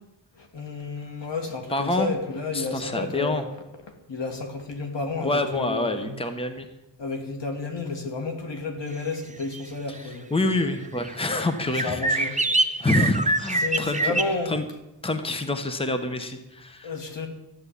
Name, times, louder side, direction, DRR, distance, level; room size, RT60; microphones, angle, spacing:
voice 1, 0.4-3.4 4.1-6.1 7.0-10.5 11.8-12.3 13.6-14.5 16.8-17.3, left 3 dB, 75° left, 4 dB, 2.5 m, -31 dB
voice 2, 1.7-2.1 2.5-3.4 5.2-6.7 9.9-12.4 12.8-14.1 14.5-14.7 15.0-17.0, left 2 dB, 15° left, 7 dB, 1.1 m, -27 dB
sound 1, 9.5-9.6 11.0-11.1 11.5-14.4, right 2 dB, 15° right, 0.8 m, -25 dB
13.0 x 9.7 x 8.5 m, 0.95 s
wide cardioid pair, 140°, 44 cm